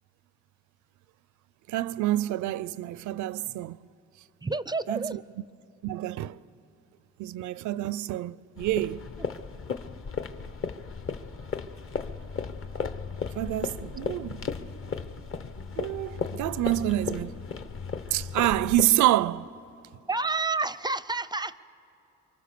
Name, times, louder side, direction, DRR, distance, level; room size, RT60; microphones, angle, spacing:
voice 1, 1.7-3.8 4.9-5.2 5.8-6.4 7.2-9.1 13.3-14.4 15.8-17.4 18.1-19.5, right 15 dB, 75° right, 0.5 m, -27 dB
voice 2, 4.4-5.1 20.1-21.6, right 3 dB, 15° right, 0.4 m, -29 dB
sound 1, 8.6-18.8, left 5 dB, 45° left, 0.9 m, -35 dB
24.0 x 24.0 x 6.8 m
cardioid pair, 90°, 30 cm